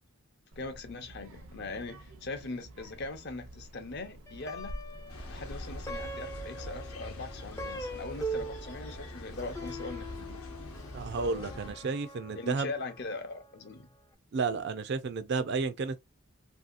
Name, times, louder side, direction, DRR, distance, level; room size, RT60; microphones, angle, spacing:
Child speech kid speaking, 0.5-6.1, equal, 75° right, 0.7 m, -47 dB
voice 1, 0.6-4.7 5.2-10.4 12.3-13.9, left 3 dB, 50° left, 0.6 m, -41 dB
Plucked string instrument, 4.3-13.7, right 2 dB, 15° left, 0.4 m, -42 dB
sound 1, 5.1-11.9, left 1 dB, 90° left, 0.9 m, -43 dB
voice 2, 10.9-12.7 14.3-16.0, right 4 dB, 50° right, 0.4 m, -32 dB
2.7 x 2.7 x 2.4 m
head